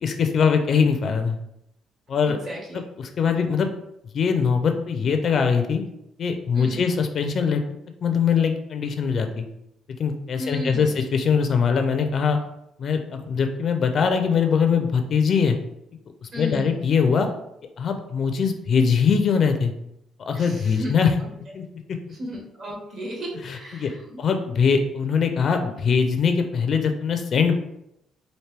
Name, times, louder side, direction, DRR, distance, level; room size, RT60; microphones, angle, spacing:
voice 1, 0.0-1.4 2.1-2.4 3.0-3.7 4.1-5.8 6.2-7.6 8.0-9.4 10.0-12.4 12.8-15.6 16.2-17.3 17.8-19.7 20.2-21.1 21.5-21.6 23.4-23.9 24.2-27.6, left 6 dB, 45° left, 6 dB, 0.4 m, -22 dB
voice 2, 2.2-2.8 6.5-6.8 10.3-11.0 16.3-16.7 20.3-20.9 21.2-21.3 22.1-24.2, left 1 dB, 45° right, -2 dB, 1.3 m, -34 dB
4.4 x 2.6 x 3.3 m, 0.79 s
cardioid pair, 140°, 0 cm